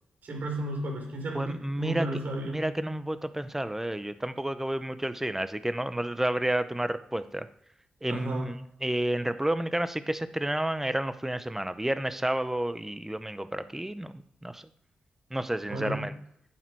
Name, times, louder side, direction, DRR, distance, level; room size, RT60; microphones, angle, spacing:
voice 1, 0.2-2.7 8.1-8.5 15.7-16.0, right 1 dB, 65° right, 1 dB, 4.6 m, -33 dB
voice 2, 1.3-2.1 2.5-7.5 8.0-14.1 14.4-14.6 15.3-16.1, right 1 dB, 10° right, 12 dB, 0.9 m, -30 dB
11.0 x 8.8 x 4.7 m, 0.77 s
cardioid pair, 55°, 3 cm